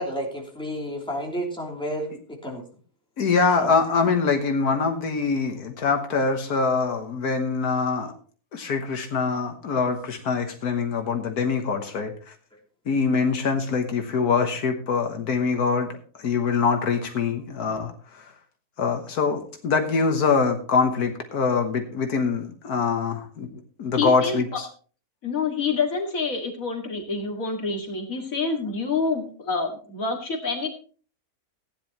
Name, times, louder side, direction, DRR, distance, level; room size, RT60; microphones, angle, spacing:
voice 1, 0.0-2.1 2.4-2.6 3.6-3.7, equal, 5° left, -2 dB, 3.1 m, -30 dB
voice 2, 3.2-8.1 8.5-12.3 12.9-15.9 16.2-18.3 18.8-23.5 23.8-24.7, left 5 dB, 80° left, 5 dB, 1.8 m, -24 dB
voice 3, 23.9-24.4 25.2-30.7, left 4 dB, 60° left, 1 dB, 2.6 m, -27 dB
16.0 x 10.0 x 3.0 m, 0.41 s
omnidirectional pair, 1.6 m